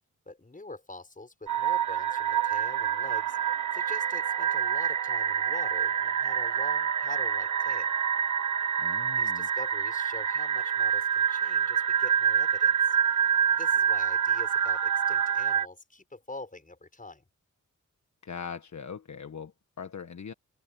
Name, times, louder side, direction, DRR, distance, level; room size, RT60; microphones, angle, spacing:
voice 1, 0.3-7.9 9.1-13.0 13.5-17.2, left 2 dB, 25° left, 6.6 m, -45 dB
sound 1, 1.5-15.7, right 8 dB, 70° right, 1.3 m, -27 dB
voice 2, 8.8-9.5 18.2-20.3, left 6 dB, 65° left, 1.4 m, -41 dB
open air
wide cardioid pair, 105°, 31 cm